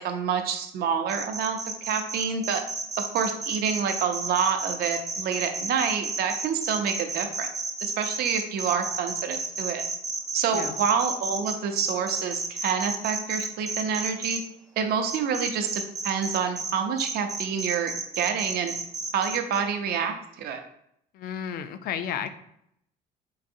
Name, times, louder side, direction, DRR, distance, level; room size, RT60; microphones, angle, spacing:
voice 1, 0.0-1.6 1.8-2.6 3.1-7.5 7.8-9.8 10.3-14.4 14.8-18.7 19.1-20.6, right 6 dB, 70° right, 6 dB, 0.6 m, -27 dB
sound 1, 1.1-14.4 15.1-16.7 17.0-19.6, right 3 dB, 20° right, 0.6 m, -32 dB
voice 2, 21.1-22.3, left 8 dB, 65° left, 11 dB, 0.4 m, -32 dB
3.9 x 2.7 x 2.6 m, 0.74 s
cardioid pair, 110°, 17 cm